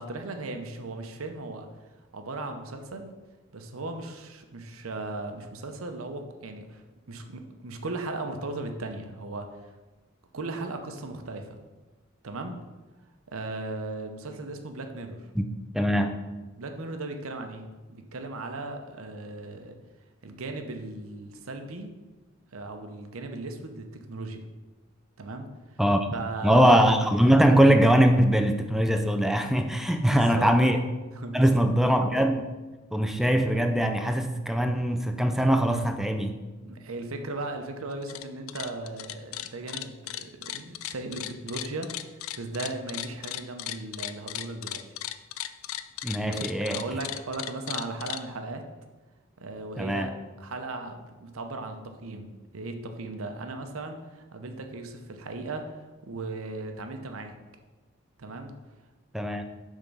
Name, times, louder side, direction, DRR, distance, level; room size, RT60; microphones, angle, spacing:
voice 1, 0.0-1.7 2.1-3.1 3.5-9.5 10.3-11.6 12.2-12.6 13.3-15.2 16.6-19.8 20.2-21.9 22.5-24.4 25.2-25.8 26.1-26.7 30.0-30.5 31.1-31.7 36.6-44.8 46.3-48.6 49.4-50.1 50.4-55.7 56.0-57.4 58.2-58.5, right 2 dB, 85° right, 6 dB, 0.7 m, -37 dB
voice 2, 15.7-16.1 25.8-26.1 26.4-30.8 31.3-32.4 32.9-36.4 46.0-46.8 49.8-50.1 59.1-59.4, equal, ahead, 6 dB, 0.3 m, -22 dB
sound 1, 37.9-38.2 38.5-48.2, left 13 dB, 75° left, 0.3 m, -36 dB
6.8 x 3.7 x 5.4 m, 1.2 s
head